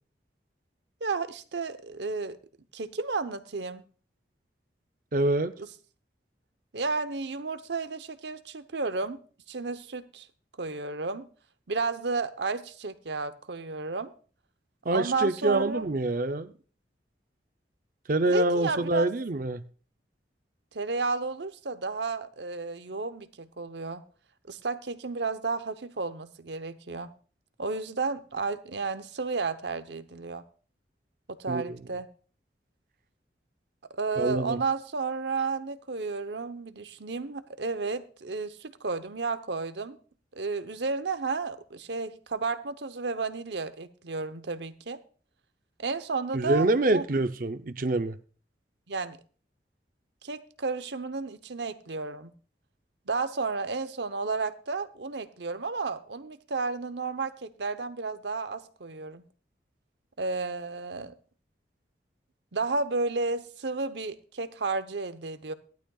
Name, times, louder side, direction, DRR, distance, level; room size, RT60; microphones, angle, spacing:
voice 1, 1.0-2.4 2.7-3.8 5.6-5.7 6.7-9.2 9.5-10.3 10.6-11.3 11.7-14.1 14.9-15.9 18.2-19.1 20.7-24.0 24.5-27.1 27.6-30.4 31.4-32.1 33.9-40.0 40.3-45.0 45.8-47.0 48.9-49.2 50.2-52.3 53.1-59.2 60.2-61.1 62.5-65.5, right 4 dB, 75° right, 11 dB, 0.9 m, -32 dB
voice 2, 5.1-5.5 14.8-16.5 18.1-19.6 31.5-31.8 34.2-34.6 46.3-48.2, right 2 dB, 50° right, 10 dB, 0.6 m, -26 dB
17.5 x 12.0 x 2.4 m, 0.39 s
head